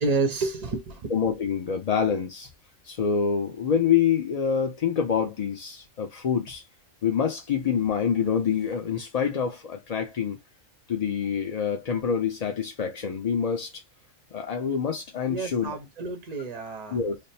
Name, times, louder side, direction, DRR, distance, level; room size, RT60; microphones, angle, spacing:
voice 1, 0.0-1.1 15.3-17.0, right 3 dB, 45° right, 0.5 m, -29 dB
voice 2, 1.1-2.5 2.8-6.6 7.0-10.4 10.9-13.8 14.3-15.7 16.9-17.2, left 7 dB, 55° left, 0.4 m, -26 dB
3.4 x 2.0 x 4.1 m
omnidirectional pair, 1.4 m